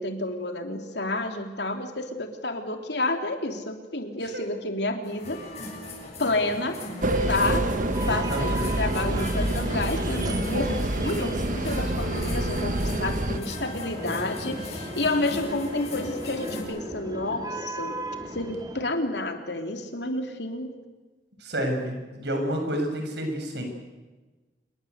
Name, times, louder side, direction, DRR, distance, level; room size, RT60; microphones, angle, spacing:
voice 1, 0.0-5.4 6.2-6.8 7.3-12.7 13.0-18.0 18.3-20.7, left 2 dB, 70° left, 5 dB, 3.2 m, -30 dB
sound 1, 5.0-16.6, left 1 dB, 40° left, 7.5 m, -38 dB
sound 2, 7.0-13.4, right 1 dB, 50° right, 1.4 m, -27 dB
sound 3, 7.9-18.8, right 1 dB, 25° right, 2.8 m, -37 dB
voice 2, 8.3-8.8 21.4-23.6, equal, 70° right, 4 dB, 6.7 m, -30 dB
27.5 x 21.5 x 8.2 m, 1.2 s
head